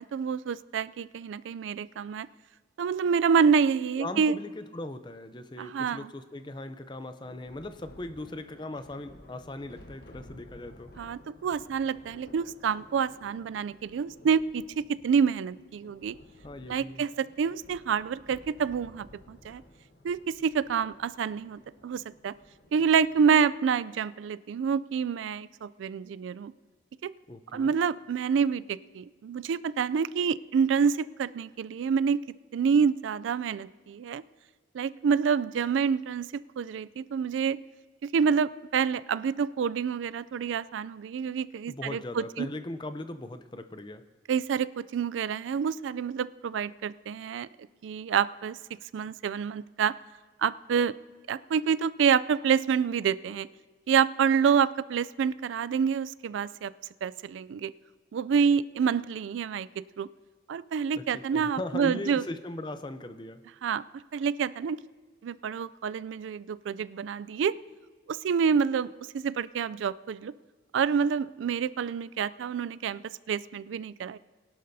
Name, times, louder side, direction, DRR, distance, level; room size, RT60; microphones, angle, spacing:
voice 1, 0.0-2.3 2.8-4.4 5.6-6.1 11.0-16.2 16.7-19.6 20.0-22.3 22.7-26.5 27.0-27.1 27.5-32.2 32.5-34.2 34.7-37.6 38.0-42.5 44.3-47.5 47.8-48.6 48.9-49.9 50.4-51.0 51.3-53.5 53.9-56.7 57.0-57.7 58.1-59.7 60.0-60.1 60.5-62.2 63.6-63.8 64.1-64.8 65.2-67.5 68.1-70.3 70.7-73.0 73.3-74.2, right 6 dB, 85° right, 18 dB, 0.3 m, -27 dB
voice 2, 4.0-10.9 16.4-17.0 27.3-27.7 41.7-44.0 60.9-63.4, left 2 dB, 25° left, 10 dB, 0.5 m, -39 dB
Thunder, 7.2-23.4, left 1 dB, 55° left, 1.1 m, -54 dB
22.0 x 11.5 x 2.7 m, 1.4 s
head